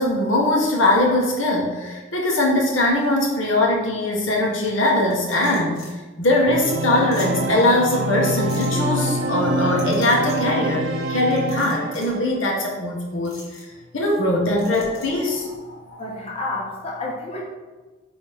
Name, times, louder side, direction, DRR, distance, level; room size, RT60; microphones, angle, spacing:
voice 1, 0.0-13.4 13.9-16.0, left 1 dB, 75° left, -1 dB, 1.3 m, -21 dB
sound 1, 5.1-5.9 6.3-6.4 6.7-6.8 7.1-7.3 8.5-8.7 9.8-10.4 11.3-12.1 13.2-13.6 14.6-15.1, left 3 dB, 55° left, 2.0 m, -41 dB
Organ, 6.5-12.2, right 1 dB, 85° right, 0.7 m, -25 dB
voice 2, 16.0-17.4, left 2 dB, 30° left, -2 dB, 0.7 m, -30 dB
8.8 x 3.1 x 3.6 m, 1.3 s
head